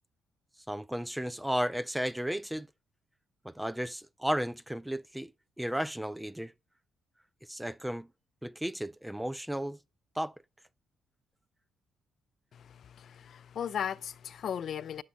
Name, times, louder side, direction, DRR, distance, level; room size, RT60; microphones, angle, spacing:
voice 1, 0.7-2.7 3.4-5.3 5.6-6.5 7.5-8.1 8.4-9.8 10.2-10.3, equal, 5° right, 0.4 m, -34 dB
voice 2, 12.5-15.0, left 8 dB, 60° left, 0.5 m, -37 dB
11.0 x 7.4 x 4.0 m
cardioid pair, 90°, 0 cm